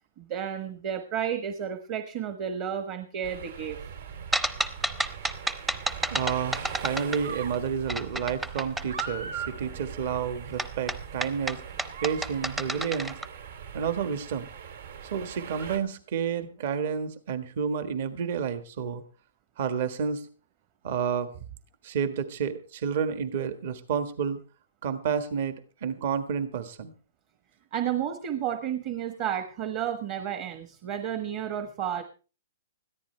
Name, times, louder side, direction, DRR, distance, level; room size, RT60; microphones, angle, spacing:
voice 1, 0.2-3.8 27.7-32.0, right 9 dB, 30° right, 9 dB, 1.2 m, -32 dB
sound 1, 3.2-15.8, right 7 dB, 65° right, 3.0 m, -40 dB
sound 2, 4.3-7.5 7.9-9.1 10.6-13.3, right 1 dB, 5° right, 0.7 m, -30 dB
voice 2, 6.1-11.6 12.0-13.2 13.7-14.5 15.1-19.0 19.6-20.2 20.8-21.3 21.8-24.4 24.8-26.9, right 7 dB, 50° right, 10 dB, 1.5 m, -30 dB
20.5 x 14.0 x 3.3 m, 0.36 s
hypercardioid pair, 160°, 0 cm